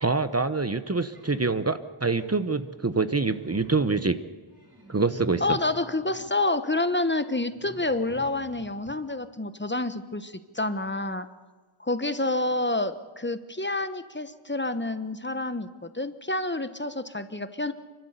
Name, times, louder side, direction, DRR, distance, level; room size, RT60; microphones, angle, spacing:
voice 1, 0.0-4.2 4.9-5.6, right 4 dB, 30° right, 11 dB, 0.9 m, -25 dB
sound 1, 1.1-1.5 2.0-2.8 3.1-4.1 4.5-6.4 7.5-8.9, equal, 50° right, 6.8 m, -45 dB
voice 2, 5.4-11.3 11.8-17.7, left 2 dB, 20° left, 11 dB, 1.1 m, -28 dB
28.0 x 12.5 x 8.2 m, 1.4 s
wide cardioid pair, 65°, 48 cm